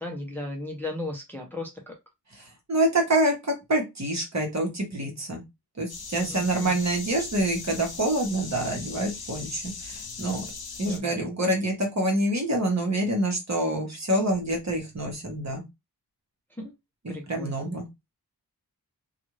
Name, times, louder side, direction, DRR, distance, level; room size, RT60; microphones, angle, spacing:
voice 1, 0.0-2.0 6.1-6.8 10.8-11.1 16.5-16.7 17.1-17.7, left 1 dB, 5° left, 0.7 m, -36 dB
voice 2, 2.7-5.4 5.8-10.4 10.8-15.6 17.3-17.8, right 1 dB, 45° right, 1.2 m, -26 dB
sound 1, 5.9-11.0, left 4 dB, 70° left, 0.7 m, -39 dB
2.5 x 2.4 x 3.0 m
wide cardioid pair, 105°, 39 cm